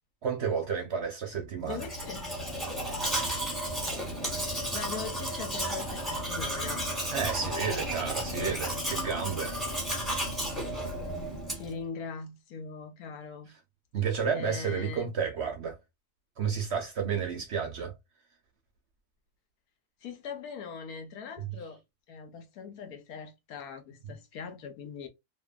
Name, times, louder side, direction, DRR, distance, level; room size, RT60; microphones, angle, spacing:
voice 1, 0.2-1.9 7.1-9.6 13.9-15.8 16.4-17.9 21.4-21.5 24.0-24.1, right 6 dB, 60° right, 0.8 m, -31 dB
voice 2, 1.6-2.2 4.3-6.9 7.4-7.6 8.4-8.6 11.0-13.5 14.3-15.1 20.0-21.8 22.1-25.1, left 5 dB, 75° left, 1.1 m, -41 dB
Domestic sounds home sounds, 1.7-11.8, right 1 dB, ahead, 1.0 m, -33 dB
2.7 x 2.5 x 2.2 m
omnidirectional pair, 1.6 m